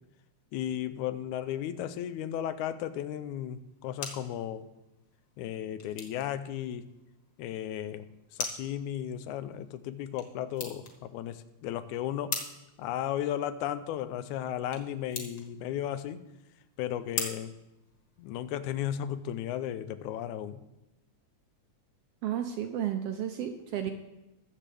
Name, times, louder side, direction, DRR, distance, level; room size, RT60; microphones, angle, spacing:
voice 1, 0.5-4.7 5.4-6.9 7.4-8.1 8.3-12.4 12.8-16.2 16.8-17.5 18.2-20.6, left 11 dB, 90° left, 12 dB, 2.1 m, -35 dB
sound 1, 3.5-18.5, left 4 dB, 40° left, 1.6 m, -43 dB
voice 2, 22.2-23.9, right 10 dB, 75° right, 6 dB, 1.4 m, -32 dB
22.0 x 7.5 x 3.4 m, 0.95 s
omnidirectional pair, 3.4 m